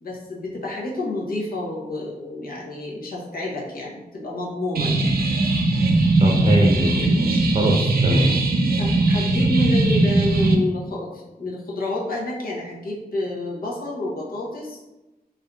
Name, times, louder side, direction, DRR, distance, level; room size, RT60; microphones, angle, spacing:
voice 1, 0.0-5.2 8.2-8.3 8.7-14.8, left 1 dB, 70° left, -4 dB, 0.7 m, -29 dB
sound 1, 4.7-10.5, right 2 dB, 75° right, 0.4 m, -19 dB
voice 2, 6.2-8.3, right 1 dB, 35° right, -1 dB, 0.6 m, -23 dB
3.4 x 2.4 x 2.3 m, 1.0 s
wide cardioid pair, 80°, 16 cm